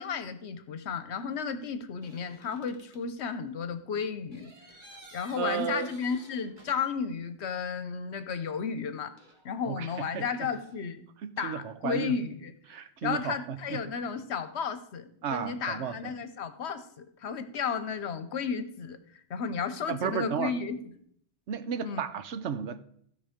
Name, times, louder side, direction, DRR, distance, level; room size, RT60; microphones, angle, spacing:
voice 1, 0.0-4.5 5.1-9.1 9.4-11.0 11.4-12.5 13.0-19.0 19.3-20.8 21.8-22.0, left 6 dB, 70° left, 1.1 m, -33 dB
sound 1, 2.0-3.0 4.3-7.2 7.4-7.5 9.2-10.8, right 1 dB, 45° right, 1.7 m, -54 dB
voice 2, 5.4-5.9 9.6-10.5 11.2-12.2 12.7-13.8 15.2-16.1 19.9-20.5 21.5-22.8, right 8 dB, 80° right, 1.1 m, -33 dB
15.5 x 5.5 x 5.1 m
omnidirectional pair, 1.2 m